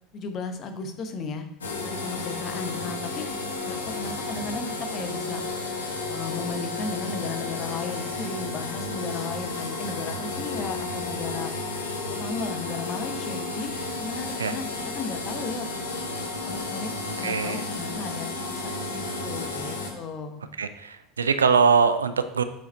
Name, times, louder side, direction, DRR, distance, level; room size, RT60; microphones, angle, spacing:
voice 1, 0.1-1.5 1.8-3.3 3.6-5.4 6.1-11.5 12.1-13.7 14.0-14.7 14.9-16.0 16.5-16.9 17.1-20.4, left 4 dB, 40° left, 6 dB, 1.0 m, -35 dB
sound 1, 1.6-19.9, left 3 dB, 80° left, 1.2 m, -32 dB
voice 2, 17.2-17.6 20.6-22.4, right 5 dB, 80° right, 11 dB, 0.4 m, -22 dB
7.6 x 5.0 x 4.4 m, 0.81 s
figure-of-eight pair, 75°, 0 cm